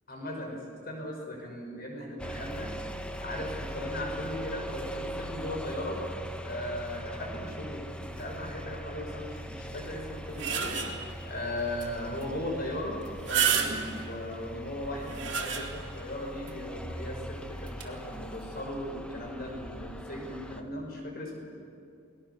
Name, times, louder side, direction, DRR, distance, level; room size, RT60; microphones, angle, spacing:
voice 1, 0.1-2.7 3.2-6.0 6.4-7.8 8.1-10.7 11.2-13.0 13.2-15.7 16.0-21.4, left 1 dB, 50° left, 1 dB, 5.7 m, -37 dB
sound 1, 2.2-20.6, equal, 5° left, 1.2 m, -41 dB
sound 2, 10.0-11.2 11.8-11.9 12.2-12.3 13.0-14.1 14.8-16.0 16.5-16.6 17.7-17.8, right 7 dB, 60° right, 2.7 m, -30 dB
29.5 x 20.5 x 7.1 m, 2.4 s
head